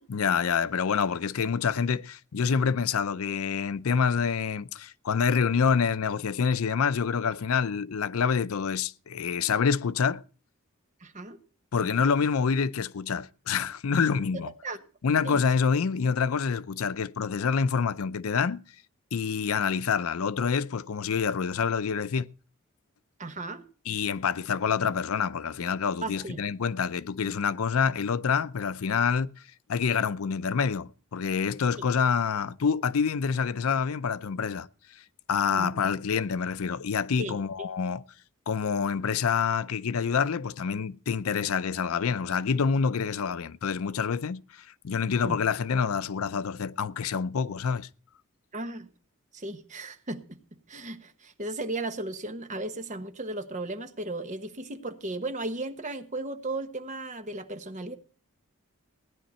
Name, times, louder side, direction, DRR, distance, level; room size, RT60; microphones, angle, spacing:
voice 1, 0.1-10.2 11.7-14.5 15.0-18.6 19.1-22.3 23.9-29.3 29.7-34.7 35.3-38.0 38.5-47.9, left 6 dB, 80° left, 0.5 m, -27 dB
voice 2, 11.0-11.4 14.3-14.8 15.2-15.4 23.2-23.6 26.0-26.4 35.5-35.7 37.2-37.7 45.2-45.4 48.5-48.9 49.3-50.4 50.7-58.0, right 2 dB, 35° right, 1.1 m, -35 dB
17.0 x 10.5 x 4.2 m
head